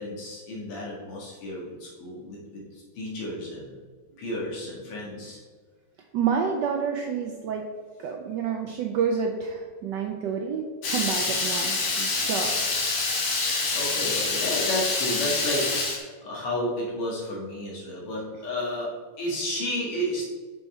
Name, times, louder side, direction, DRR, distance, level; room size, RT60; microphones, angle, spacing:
voice 1, 0.0-3.8 4.2-5.4 13.7-15.9 16.2-20.3, left 1 dB, 80° left, -4 dB, 2.6 m, -32 dB
voice 2, 6.1-7.7 8.0-12.9, right 6 dB, 80° right, 2 dB, 1.0 m, -29 dB
Water tap faucet / Liquid, 10.8-16.0, left 3 dB, 55° left, 1.6 m, -26 dB
6.3 x 4.4 x 4.2 m, 1.5 s
omnidirectional pair, 2.4 m